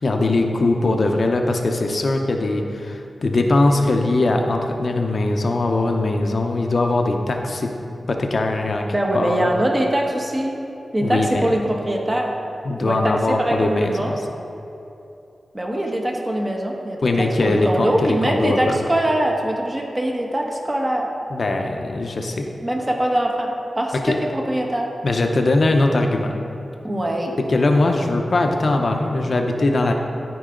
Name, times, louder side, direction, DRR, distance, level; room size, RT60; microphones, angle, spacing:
voice 1, 0.0-7.7 8.1-8.9 9.1-9.5 11.0-11.6 12.6-14.1 17.0-18.8 21.3-22.5 24.0-24.2 25.0-26.3 27.5-29.9, left 2 dB, 60° left, 3 dB, 0.7 m, -20 dB
voice 2, 8.9-10.5 10.9-12.3 12.8-14.2 15.5-21.1 22.6-24.9 26.8-27.3, right 1 dB, 25° right, 1 dB, 1.2 m, -23 dB
13.0 x 4.7 x 3.8 m, 2.8 s
cardioid pair, 65°, 0 cm